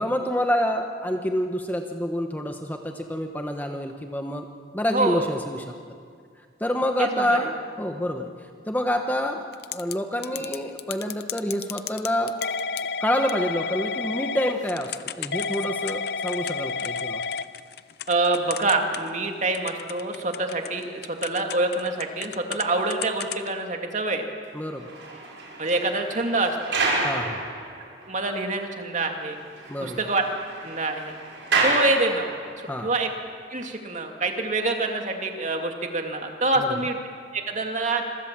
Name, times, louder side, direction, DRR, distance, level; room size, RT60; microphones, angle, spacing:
voice 1, 0.0-4.5 4.7-5.7 6.6-8.3 8.7-12.3 13.0-17.2 24.5-24.9 27.0-27.5 29.7-30.0 32.7-32.9, equal, 10° left, 4 dB, 1.1 m, -27 dB
voice 2, 4.9-5.3 7.0-7.5 18.1-24.2 25.6-26.8 28.0-29.4 29.8-30.2 30.6-31.1 31.6-32.3 32.6-33.1 33.5-37.0 37.3-38.0, right 2 dB, 40° right, 3 dB, 2.4 m, -26 dB
Typing / Telephone, 9.5-9.9 10.2-19.3 19.5-22.7 22.9-23.5, left 6 dB, 55° left, 0.7 m, -31 dB
sound 1, 24.6-28.1 28.6-28.7 29.1-29.2 29.4-32.7, right 3 dB, 70° right, 6.1 m, -29 dB
26.5 x 23.0 x 7.5 m, 2.1 s
head